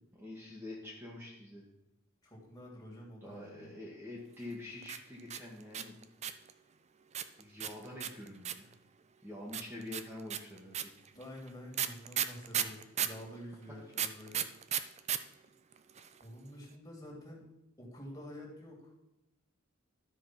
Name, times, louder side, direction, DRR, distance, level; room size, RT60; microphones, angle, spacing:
voice 1, 0.1-1.6 3.2-6.0 7.4-8.7 9.2-10.9 12.6-12.7, left 2 dB, 10° right, -5 dB, 1.6 m, -46 dB
voice 2, 2.2-3.7 11.1-14.5 16.2-17.5 17.8-18.9, equal, 20° left, -2 dB, 2.6 m, -48 dB
sound 1, 4.8-6.5 7.1-8.7 9.5-13.2 13.9-15.2 15.4-15.5 15.7-16.2, right 9 dB, 30° right, 0.5 m, -34 dB
12.5 x 4.9 x 5.9 m, 0.92 s
head